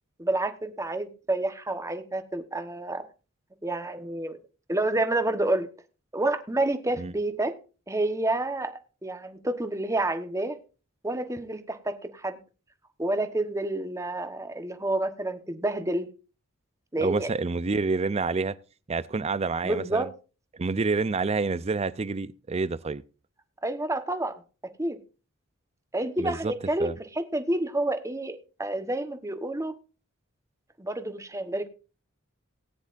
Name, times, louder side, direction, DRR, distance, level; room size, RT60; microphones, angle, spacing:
voice 1, 0.2-3.1 3.6-4.4 4.7-5.7 6.1-7.6 7.9-10.6 11.0-12.4 13.0-16.1 16.9-17.3 19.6-20.1 23.6-24.3 24.8-25.0 25.9-29.7 30.8-31.7, right 2 dB, 15° right, 1.1 m, -29 dB
voice 2, 17.0-18.6 18.9-20.1 20.5-23.0 26.2-26.5 26.8-26.9, right 4 dB, 30° right, 0.5 m, -28 dB
18.5 x 9.8 x 2.5 m
head